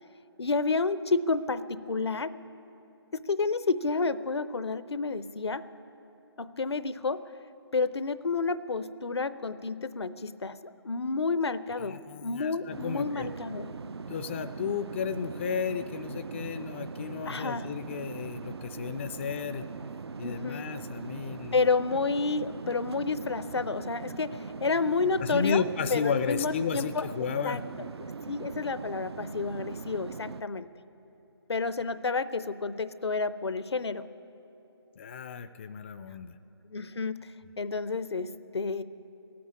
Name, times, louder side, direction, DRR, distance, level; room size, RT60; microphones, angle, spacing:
voice 1, 0.4-2.3 3.1-5.6 6.4-7.2 7.7-13.7 17.3-17.7 20.2-20.7 21.5-25.6 25.9-27.1 27.4-27.6 28.3-30.7 31.5-34.1 36.7-38.8, left 4 dB, 75° left, 14 dB, 0.6 m, -30 dB
voice 2, 11.7-13.3 14.1-19.6 20.2-21.7 25.2-27.6 35.0-36.3, left 6 dB, 30° left, 11 dB, 0.3 m, -33 dB
sound 1, 12.7-30.4, right 5 dB, 70° right, 0.4 m, -41 dB
16.0 x 8.6 x 9.6 m, 2.9 s
figure-of-eight pair, 145°, 14 cm